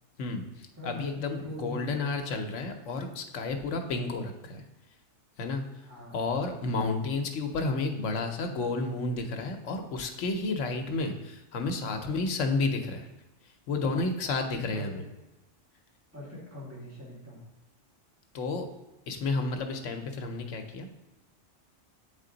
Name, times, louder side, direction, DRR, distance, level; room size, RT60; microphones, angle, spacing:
voice 1, 0.2-4.6 5.4-5.6 6.1-13.1 13.7-15.0 18.3-18.7 19.1-20.9, left 3 dB, 80° left, 5 dB, 1.1 m, -31 dB
voice 2, 0.8-2.2 5.8-6.2 14.2-14.8 16.1-17.4, left 1 dB, 10° right, -6 dB, 1.8 m, -42 dB
8.3 x 3.9 x 3.9 m, 1.0 s
omnidirectional pair, 1.3 m